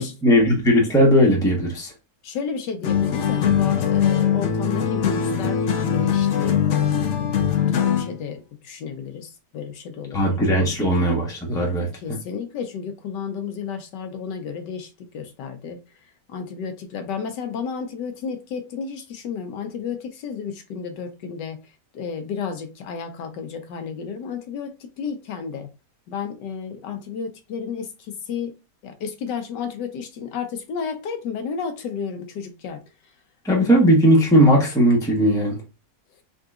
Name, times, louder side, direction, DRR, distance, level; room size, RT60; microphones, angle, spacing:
voice 1, 0.0-1.9 10.1-11.9 33.4-35.5, equal, 5° left, 0.7 m, -18 dB
voice 2, 2.2-6.6 7.2-10.4 11.7-15.8 16.3-25.7 26.1-28.5 28.8-32.8, left 6 dB, 80° left, 1.4 m, -32 dB
sound 1, 2.8-8.2, left 8 dB, 60° left, 0.8 m, -21 dB
3.8 x 3.5 x 2.4 m
omnidirectional pair, 1.8 m